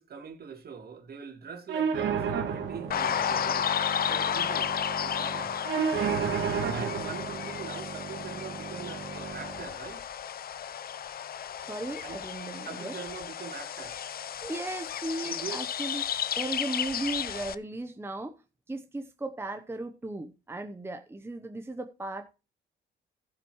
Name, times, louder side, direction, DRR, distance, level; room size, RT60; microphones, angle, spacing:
voice 1, 0.0-5.6 6.5-10.1 12.0-12.2 12.6-14.0 15.2-15.6, right 6 dB, 50° right, 2.4 m, -43 dB
sound 1, 1.7-9.7, right 7 dB, 75° right, 2.1 m, -33 dB
sound 2, 2.9-17.6, left 9 dB, 50° left, 0.6 m, -33 dB
voice 2, 11.6-12.9 14.2-16.0 16.4-22.4, right 2 dB, 10° right, 0.9 m, -36 dB
15.0 x 8.6 x 3.1 m
cardioid pair, 90°, 20 cm